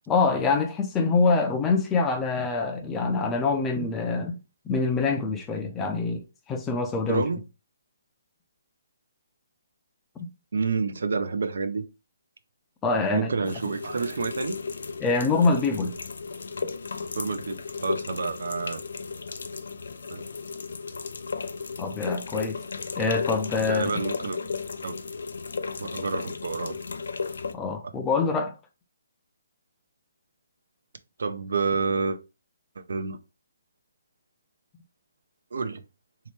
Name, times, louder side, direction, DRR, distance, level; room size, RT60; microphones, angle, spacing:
voice 1, 0.1-4.4 4.7-7.2 12.8-13.3 15.0-15.9 21.8-22.6 23.0-23.9 27.5-28.5, left 4 dB, 15° left, 0.5 m, -25 dB
voice 2, 7.1-7.4 10.5-11.8 13.1-14.6 17.2-18.8 20.1-20.2 23.6-24.4 24.8-24.9 25.8-26.7 31.2-32.2 32.8-33.2 35.5-35.8, right 4 dB, 70° right, 0.4 m, -29 dB
sound 1, 13.4-27.5, left 4 dB, 75° left, 0.4 m, -34 dB
3.2 x 2.8 x 3.1 m
hypercardioid pair, 155°, 0 cm